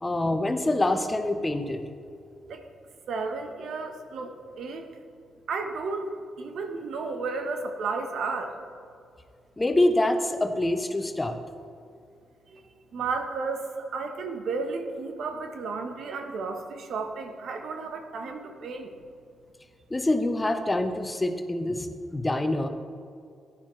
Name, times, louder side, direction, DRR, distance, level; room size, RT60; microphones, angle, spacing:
voice 1, 0.0-1.8 9.6-11.4 19.9-22.7, left 1 dB, 20° left, 7 dB, 1.0 m, -25 dB
voice 2, 3.1-4.9 5.5-8.6 12.5-12.6 12.9-18.9, right 4 dB, 65° right, 5 dB, 1.0 m, -33 dB
14.5 x 9.7 x 3.2 m, 2.4 s
hypercardioid pair, 40°, 0 cm